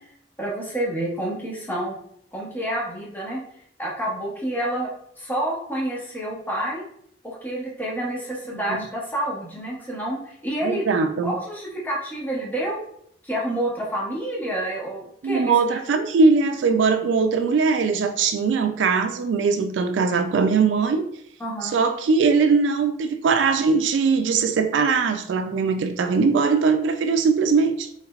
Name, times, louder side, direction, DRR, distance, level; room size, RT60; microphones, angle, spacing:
voice 1, 0.4-2.0 2.3-3.4 3.8-4.9 5.2-6.8 7.2-10.9 11.2-12.8 13.2-15.8 21.4-21.8, right 1 dB, 10° left, -5 dB, 1.0 m, -28 dB
voice 2, 10.6-11.3 15.2-21.0 21.6-27.9, right 4 dB, 85° right, 8 dB, 0.3 m, -20 dB
3.4 x 3.1 x 2.3 m, 0.69 s
head